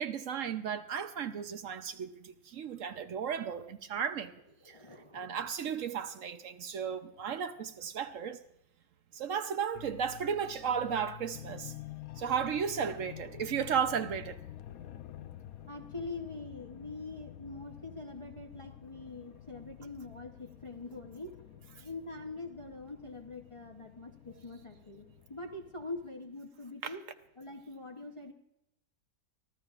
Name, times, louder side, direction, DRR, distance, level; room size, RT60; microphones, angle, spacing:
voice 1, 0.0-4.3 4.6-4.8 5.1-8.4 9.1-11.7 12.2-14.4 26.8-26.9, right 7 dB, 65° right, 1.0 m, -34 dB
voice 2, 4.6-5.3 15.7-21.3 21.8-27.0 27.4-28.3, left 3 dB, 25° left, 0.7 m, -44 dB
sound 1, 9.8-26.1, left 12 dB, 75° left, 1.1 m, -49 dB
25.0 x 14.5 x 2.5 m
omnidirectional pair, 1.6 m